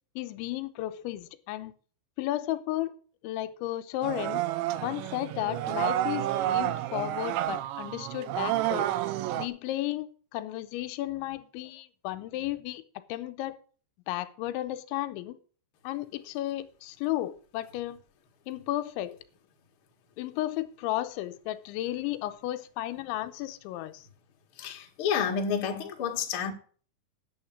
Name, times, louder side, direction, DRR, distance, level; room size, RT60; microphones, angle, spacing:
voice 1, 0.2-1.7 2.2-2.9 3.2-4.4 4.8-8.9 9.4-13.6 14.1-15.4 15.8-18.0 18.5-19.2 20.2-24.1, left 15 dB, 85° left, 3.0 m, -34 dB
sound 1, 4.0-9.5, right 13 dB, 80° right, 2.9 m, -30 dB
voice 2, 24.6-26.5, left 7 dB, 55° left, 1.4 m, -29 dB
9.4 x 7.2 x 8.4 m
omnidirectional pair, 5.4 m